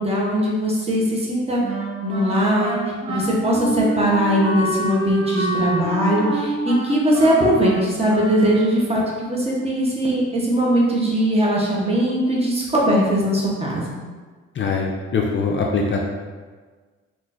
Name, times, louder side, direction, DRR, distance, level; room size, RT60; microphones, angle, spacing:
voice 1, 0.0-1.6 2.0-13.8, equal, 20° right, -4 dB, 0.8 m, -20 dB
Wind instrument woodwind instrument, 1.6-8.9, right 2 dB, 80° right, 0.8 m, -28 dB
voice 2, 14.6-16.0, left 4 dB, 40° left, 0 dB, 0.4 m, -22 dB
3.6 x 2.5 x 2.4 m, 1.4 s
cardioid pair, 90°, 30 cm